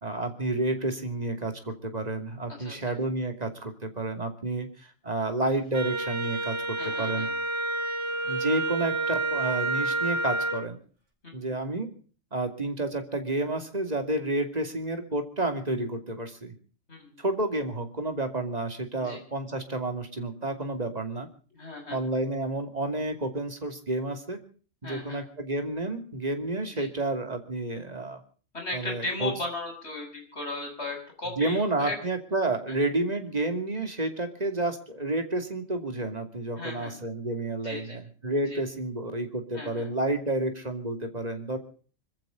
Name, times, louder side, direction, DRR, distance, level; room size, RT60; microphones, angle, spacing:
voice 1, 0.0-7.3 8.2-10.8 11.3-11.9 12.3-16.5 17.2-21.3 21.9-24.4 24.8-28.2 28.7-29.3 31.4-41.6, right 2 dB, 30° right, 6 dB, 2.8 m, -30 dB
voice 2, 2.5-2.9 6.8-7.3 11.2-11.6 16.9-17.3 19.0-19.2 21.5-22.0 24.8-25.2 26.7-26.9 28.5-32.0 32.7-32.8 36.6-37.0 37.6-38.0 38.4-38.6 39.5-39.9, left 2 dB, 60° left, 2 dB, 7.5 m, -37 dB
Wind instrument woodwind instrument, 5.7-10.6, right 2 dB, 65° right, 4.7 m, -29 dB
25.5 x 14.5 x 3.9 m, 0.41 s
omnidirectional pair, 1.3 m